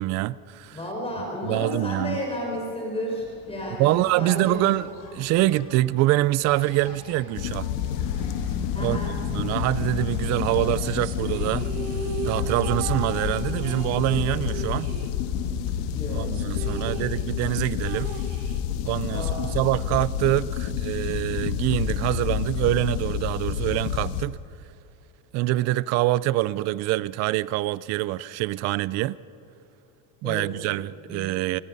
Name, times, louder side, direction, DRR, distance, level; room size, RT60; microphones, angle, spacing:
voice 1, 0.0-0.8 1.4-2.2 3.8-4.9 5.1-7.7 8.8-9.0 9.3-11.7 12.2-14.9 16.1-18.1 18.8-19.3 19.5-24.4 25.3-29.2 30.2-31.6, right 16 dB, 40° right, 0.4 m, -25 dB
voice 2, 0.7-4.7 5.3-5.4 8.7-9.2 15.9-16.3 16.6-16.9 19.1-19.6 30.2-30.4 31.1-31.3, left 1 dB, 10° left, 4.7 m, -32 dB
Engine, 3.1-16.1, left 5 dB, 45° left, 6.8 m, -41 dB
sound 1, 7.4-24.2, left 9 dB, 75° left, 1.7 m, -29 dB
sound 2, 11.0-15.7 15.9-16.0 16.3-19.0, right 6 dB, 85° right, 1.8 m, -37 dB
26.5 x 20.0 x 5.3 m
supercardioid pair, 140°, 46 cm